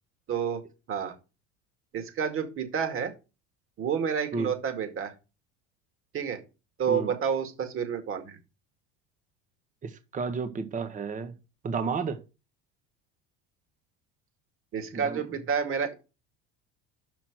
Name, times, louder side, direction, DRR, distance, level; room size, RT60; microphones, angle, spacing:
voice 1, 0.3-0.6 0.9-1.1 1.9-3.1 3.8-5.1 6.1-6.4 6.8-8.4 14.7-15.9, right 7 dB, 40° right, 2.1 m, -29 dB
voice 2, 9.8-11.3 11.6-12.2 14.9-15.2, right 5 dB, 25° right, 1.0 m, -32 dB
6.1 x 6.0 x 6.0 m
supercardioid pair, 115°, 31 cm